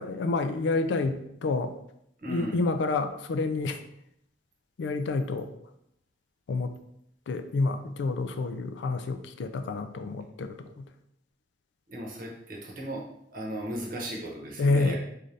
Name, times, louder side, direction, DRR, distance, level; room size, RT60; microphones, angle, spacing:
voice 1, 0.0-1.7 2.3-3.8 4.8-5.5 6.5-6.7 7.3-10.9 14.6-15.0, left 3 dB, 85° left, 9 dB, 0.4 m, -28 dB
voice 2, 2.2-2.6 11.9-13.1 13.3-15.0, right 1 dB, 50° right, -1 dB, 0.9 m, -36 dB
3.7 x 3.3 x 2.6 m, 0.76 s
head